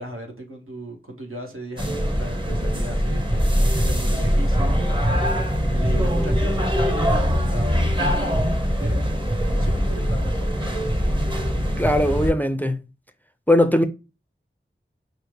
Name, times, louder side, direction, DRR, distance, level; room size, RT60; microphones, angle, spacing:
voice 1, 0.0-8.5 8.8-10.9, equal, 85° right, 1.1 m, -37 dB
sound 1, 1.8-12.3, equal, 25° right, 0.8 m, -22 dB
voice 2, 11.8-12.8 13.5-13.8, left 1 dB, 10° left, 0.4 m, -19 dB
5.7 x 2.0 x 3.2 m
wide cardioid pair, 50°, 21 cm